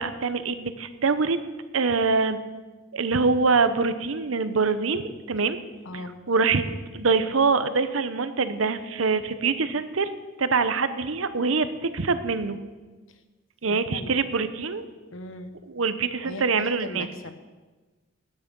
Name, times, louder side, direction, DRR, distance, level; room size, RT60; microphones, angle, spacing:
voice 1, 0.0-1.4 1.7-2.4 2.9-5.6 6.3-6.6 6.9-10.1 10.4-12.6 13.6-14.9 15.7-17.1, right 4 dB, 90° right, 11 dB, 0.9 m, -24 dB
voice 2, 5.8-6.2 13.1-13.2 13.7-14.2 15.1-15.5 16.2-17.4, left 2 dB, 80° left, 9 dB, 1.1 m, -39 dB
15.5 x 9.5 x 5.4 m, 1.3 s
head